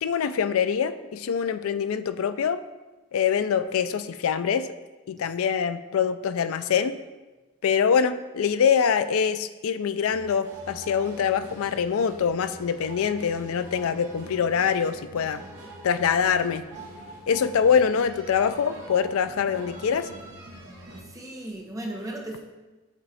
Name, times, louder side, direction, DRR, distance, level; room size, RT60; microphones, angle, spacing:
voice 1, 0.0-2.6 3.1-4.7 5.1-7.0 7.6-15.4 15.8-16.6 17.3-20.1, left 7 dB, 75° left, 11 dB, 0.3 m, -24 dB
sound 1, 10.1-21.0, right 1 dB, 55° right, 1.2 m, -44 dB
voice 2, 21.0-22.4, right 1 dB, 15° right, 0 dB, 0.7 m, -35 dB
7.2 x 3.2 x 4.1 m, 1.2 s
head